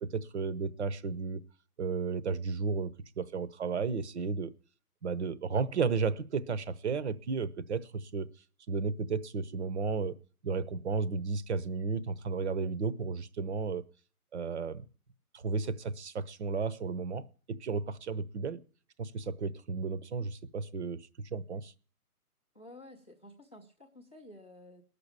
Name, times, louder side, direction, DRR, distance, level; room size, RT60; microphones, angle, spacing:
voice 1, 0.0-1.4 1.8-4.5 5.0-8.3 8.7-10.2 10.4-13.8 14.3-14.9 15.3-18.6 19.0-21.7, right 5 dB, 45° right, 16 dB, 0.9 m, -33 dB
voice 2, 22.5-24.8, left 1 dB, 10° left, -6 dB, 0.6 m, -52 dB
19.0 x 6.8 x 8.6 m, 0.42 s
hypercardioid pair, 160°, 45 cm